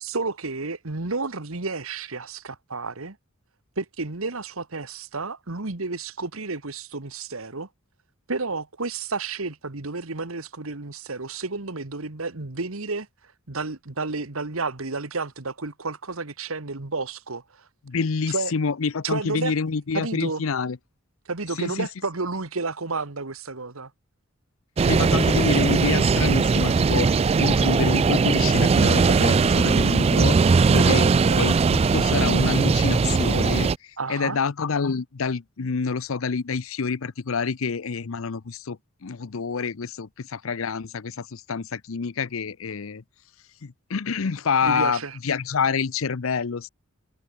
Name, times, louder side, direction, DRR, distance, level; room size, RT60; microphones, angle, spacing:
voice 1, 0.0-3.2 3.8-7.7 8.3-13.1 13.5-17.7 18.3-18.5 19.0-19.5 19.9-20.4 21.2-23.9 30.8-31.1 34.0-34.4 44.6-45.2, right 3 dB, 75° right, 1.7 m, -31 dB
voice 2, 17.9-20.8 21.6-21.9 24.9-30.4 30.7-43.0 43.6-46.7, left 5 dB, 70° left, 0.6 m, -27 dB
sound 1, 24.8-33.8, right 4 dB, 30° right, 0.3 m, -19 dB
head